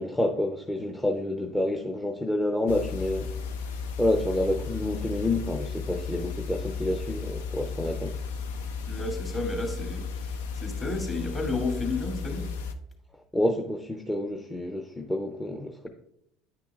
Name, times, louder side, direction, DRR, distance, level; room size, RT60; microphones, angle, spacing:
voice 1, 0.0-3.3 4.0-8.1 13.3-15.9, left 1 dB, 10° left, 0.7 m, -28 dB
sound 1, 2.7-12.7, left 5 dB, 85° left, 0.5 m, -34 dB
voice 2, 8.9-12.5, left 2 dB, 30° left, 2.5 m, -32 dB
10.0 x 5.7 x 2.4 m
hypercardioid pair, 80°, 0 cm